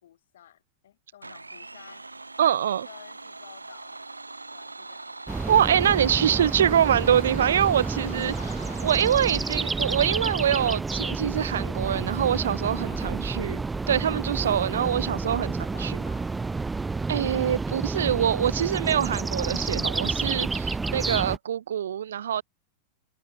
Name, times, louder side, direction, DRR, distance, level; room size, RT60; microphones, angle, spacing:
voice 1, 0.0-2.1 2.8-4.0 4.5-5.1 8.0-8.8 12.8-13.6 14.7-16.8, left 11 dB, 60° left, 3.5 m, -51 dB
Domestic sounds home sounds, 1.2-9.9, right 3 dB, 80° right, 1.4 m, -42 dB
voice 2, 2.4-2.9 5.5-8.3 8.8-13.6 13.9-15.5 15.8-16.0 17.1-22.4, right 9 dB, 65° right, 0.3 m, -24 dB
sound 1, 5.3-21.4, right 3 dB, 10° right, 0.7 m, -30 dB
figure-of-eight pair, 90°, 0 cm